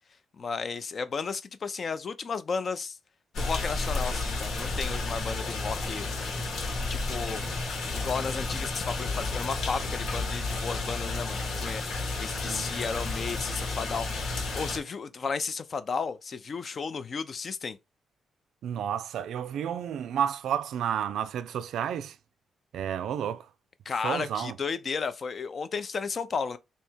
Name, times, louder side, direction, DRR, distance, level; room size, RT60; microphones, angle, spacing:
voice 1, 0.4-3.0 3.4-6.0 6.9-7.4 7.9-17.8 23.9-26.6, left 5 dB, 40° left, 0.5 m, -33 dB
sound 1, 3.3-14.8, left 3 dB, 75° left, 1.4 m, -32 dB
voice 2, 12.3-12.7 18.6-22.2 22.7-23.5 24.0-24.6, right 9 dB, 80° right, 0.4 m, -31 dB
3.4 x 2.7 x 4.4 m
cardioid pair, 120°, 0 cm